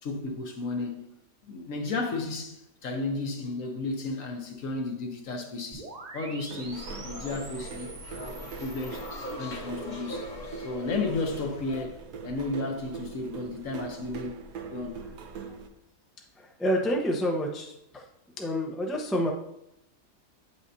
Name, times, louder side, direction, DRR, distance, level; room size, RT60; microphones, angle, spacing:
voice 1, 0.0-1.1 1.4-9.0 9.4-10.3 10.6-12.0 12.2-14.4 14.7-15.0, left 3 dB, 55° left, 1.2 m, -33 dB
sound 1, 5.7-9.3, right 3 dB, 40° right, 0.6 m, -45 dB
sound 2, 6.5-15.7, right 5 dB, 75° right, 1.3 m, -42 dB
sound 3, 6.7-11.9, left 1 dB, 30° left, 1.1 m, -41 dB
voice 2, 16.4-18.1 18.4-19.3, equal, ahead, 0.4 m, -29 dB
8.8 x 5.8 x 2.7 m
omnidirectional pair, 1.8 m